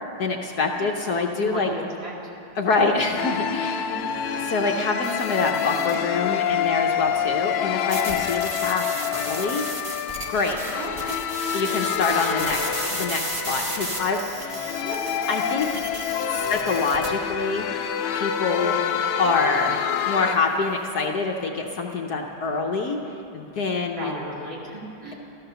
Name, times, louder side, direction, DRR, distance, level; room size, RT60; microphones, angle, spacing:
voice 1, 0.2-1.7 2.6-3.9 4.4-8.9 9.1-9.6 10.3-10.6 11.5-14.7 15.3-15.7 16.3-17.8 18.1-18.8 19.2-19.8 20.1-23.0 23.3-24.1, left 4 dB, 60° left, 2 dB, 1.2 m, -25 dB
voice 2, 1.3-2.1 3.8-4.0 7.3-7.4 10.7-10.9 14.8-15.0 24.0-25.1, right 2 dB, 65° right, -4 dB, 3.4 m, -34 dB
sound 1, 3.2-20.4, left 9 dB, 85° left, 1.6 m, -27 dB
sound 2, 5.0-6.1 7.9-17.1, right 1 dB, 20° right, 0.9 m, -34 dB
15.0 x 13.5 x 6.8 m, 2.9 s
omnidirectional pair, 2.3 m